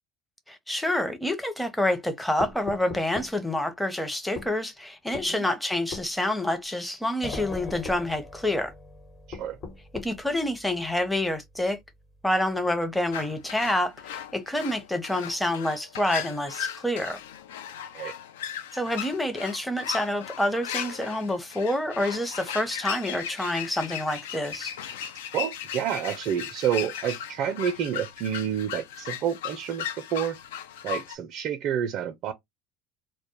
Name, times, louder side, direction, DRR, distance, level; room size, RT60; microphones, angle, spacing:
voice 1, 0.5-8.7 10.0-11.8 12.2-17.2 18.7-24.7, left 1 dB, 5° left, 0.7 m, -28 dB
sound 1, 2.4-3.4 4.4-4.5 5.1-5.3 5.9-6.1 7.3-8.1 9.3-10.2, left 4 dB, 55° left, 1.1 m, -38 dB
sound 2, 7.2-14.8, left 2 dB, 35° left, 1.1 m, -46 dB
sound 3, 13.1-31.1, left 9 dB, 80° left, 0.3 m, -37 dB
voice 2, 25.3-29.9 30.1-30.4 30.8-32.3, right 9 dB, 55° right, 0.4 m, -29 dB
2.1 x 2.1 x 2.9 m
hypercardioid pair, 80°, 0 cm